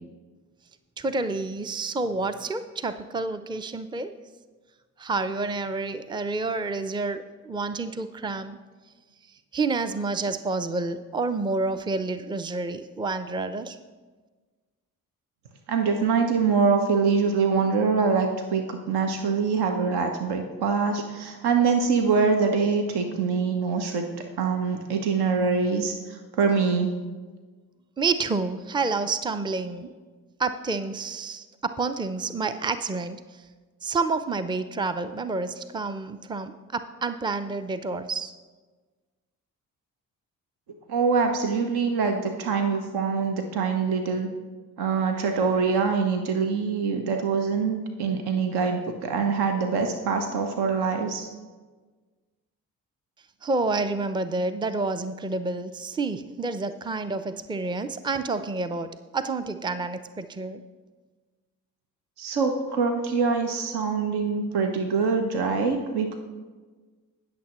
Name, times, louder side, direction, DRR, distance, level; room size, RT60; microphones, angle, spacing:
voice 1, 1.0-4.1 5.0-8.6 9.5-13.8 28.0-29.9 30.4-33.2 33.8-38.3 53.4-60.6, right 3 dB, 10° right, 11 dB, 0.5 m, -29 dB
voice 2, 15.7-26.9 40.9-44.3 44.8-51.3 62.2-66.2, right 5 dB, 65° right, 5 dB, 1.1 m, -24 dB
19.5 x 6.7 x 3.1 m, 1.4 s
hypercardioid pair, 40°, 42 cm